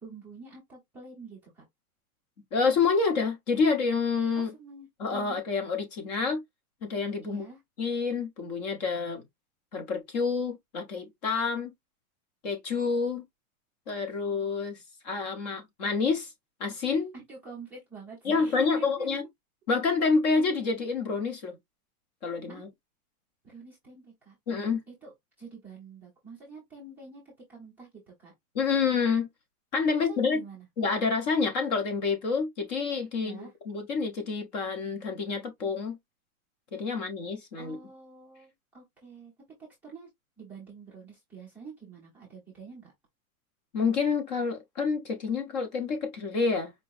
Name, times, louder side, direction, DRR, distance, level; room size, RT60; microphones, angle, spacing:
voice 1, 0.0-1.6 4.4-5.4 7.2-7.6 17.1-19.1 22.5-22.6 23.4-24.4 24.9-25.1 25.4-28.3 30.1-30.7 33.1-33.5 37.6-39.3 39.6-40.1 40.4-42.9, right 4 dB, 5° right, 0.8 m, -47 dB
voice 2, 2.5-4.5 5.0-6.4 6.8-7.5 7.8-9.2 9.7-11.7 12.4-13.2 13.9-14.8 15.0-16.3 16.6-17.1 18.2-19.2 19.7-21.6 22.2-22.7 24.5-24.8 28.5-29.3 29.7-30.4 30.8-36.0 36.7-37.8 43.7-46.7, left 4 dB, 30° left, 0.9 m, -28 dB
4.7 x 2.9 x 2.5 m
supercardioid pair, 180°, 44 cm